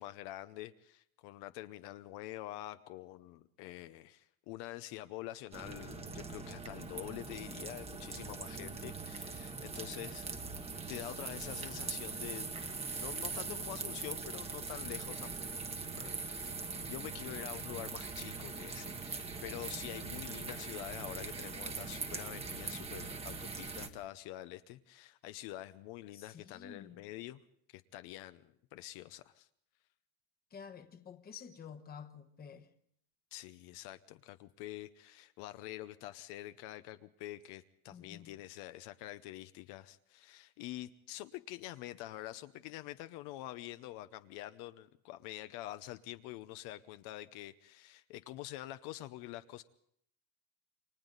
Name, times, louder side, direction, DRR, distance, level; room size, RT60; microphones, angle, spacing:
voice 1, 0.0-10.3 10.7-15.6 16.0-27.4 27.7-29.5 33.3-49.6, left 15 dB, 65° left, 0.8 m, -46 dB
sound 1, 5.5-23.9, right 4 dB, 15° right, 1.1 m, -42 dB
voice 2, 16.7-17.1 26.1-27.0 30.5-32.7 37.9-38.3, left 7 dB, 20° left, 1.1 m, -51 dB
29.0 x 23.5 x 4.0 m
cardioid pair, 170°, 43 cm